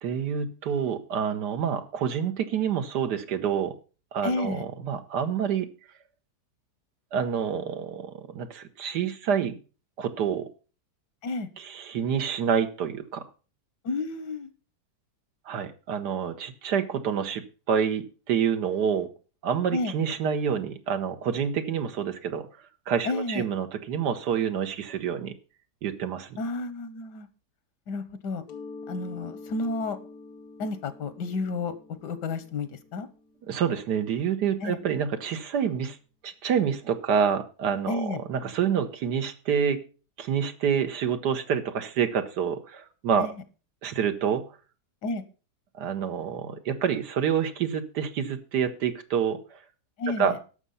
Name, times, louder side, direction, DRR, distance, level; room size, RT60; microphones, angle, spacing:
voice 1, 0.0-3.7 4.1-5.7 7.1-9.6 10.0-10.4 11.6-13.2 15.5-19.1 19.4-22.5 22.9-25.3 25.8-26.4 33.5-36.0 36.2-39.8 40.2-43.3 43.8-44.4 45.8-49.6 50.2-50.4, right 7 dB, 85° right, 8 dB, 1.7 m, -27 dB
voice 2, 4.2-4.6 11.2-11.5 13.8-14.5 19.7-19.9 23.0-23.5 26.4-27.3 27.9-28.4 28.9-30.0 30.6-31.7 32.0-33.1 34.6-34.8 37.9-38.2 43.2-43.3 45.0-45.2 50.0-50.4, left 3 dB, 90° left, 13 dB, 1.7 m, -31 dB
Mallet percussion, 28.5-34.0, left 3 dB, 70° left, 1.7 m, -46 dB
11.5 x 6.7 x 5.6 m, 0.36 s
omnidirectional pair, 1.8 m